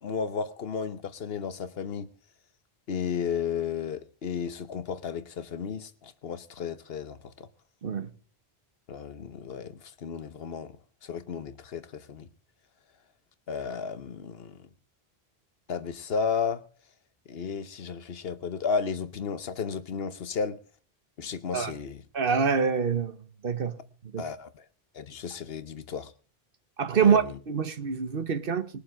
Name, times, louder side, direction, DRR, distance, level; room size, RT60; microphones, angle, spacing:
voice 1, 0.0-2.1 2.9-7.5 8.9-10.8 11.0-12.3 13.5-14.7 15.7-16.6 17.3-20.6 21.2-22.0 24.2-24.6 24.9-26.1 26.9-27.4, left 6 dB, 70° left, 1.1 m, -33 dB
voice 2, 22.1-23.2 23.4-23.8 24.1-24.2 26.8-28.7, right 6 dB, 60° right, 1.2 m, -25 dB
21.0 x 7.1 x 4.8 m
omnidirectional pair, 1.1 m